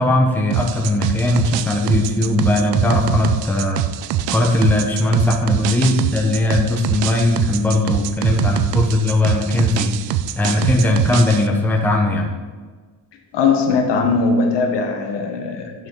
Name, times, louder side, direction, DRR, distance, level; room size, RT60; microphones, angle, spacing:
voice 1, 0.0-3.8 4.3-9.9 10.4-12.3, left 2 dB, 5° left, 0 dB, 1.0 m, -18 dB
sound 1, 0.5-11.5, right 11 dB, 80° right, 0.6 m, -24 dB
voice 2, 13.3-15.9, left 4 dB, 75° left, 3 dB, 1.3 m, -19 dB
9.2 x 5.8 x 3.9 m, 1.4 s
cardioid pair, 135°, 42 cm